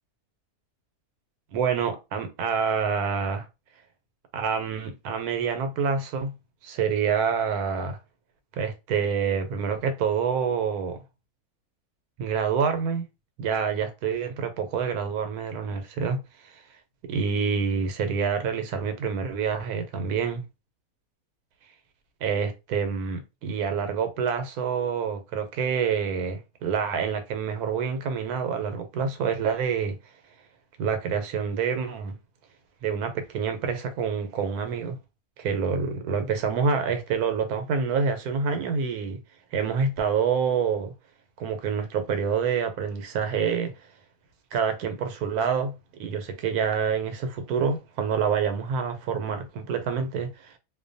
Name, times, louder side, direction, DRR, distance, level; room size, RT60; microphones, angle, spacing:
voice 1, 1.5-3.4 4.3-6.3 6.6-8.0 8.6-11.0 12.2-13.1 13.4-16.2 17.0-20.4 22.2-30.0 30.8-32.1 32.8-35.0 35.4-39.2 39.5-40.9 41.4-43.7 44.5-45.7 46.0-50.5, right 6 dB, 85° right, 1.1 m, -27 dB
2.6 x 2.2 x 2.5 m
omnidirectional pair, 1.6 m